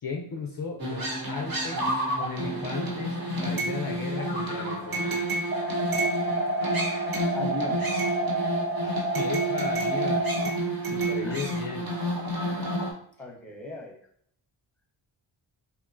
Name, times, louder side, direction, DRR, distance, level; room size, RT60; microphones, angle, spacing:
voice 1, 0.0-1.9 2.2-3.2 3.4-5.4 8.8-10.7 10.9-11.9, left 4 dB, 45° left, 1 dB, 0.4 m, -36 dB
sound 1, 0.8-12.9, right 1 dB, 45° right, 0.9 m, -30 dB
sound 2, 5.5-10.5, right 1 dB, 30° right, 0.4 m, -29 dB
voice 2, 7.3-7.9 10.8-11.4 12.4-14.0, left 1 dB, 5° left, 0 dB, 0.8 m, -39 dB
2.7 x 2.1 x 2.5 m, 0.65 s
cardioid pair, 45°, 50 cm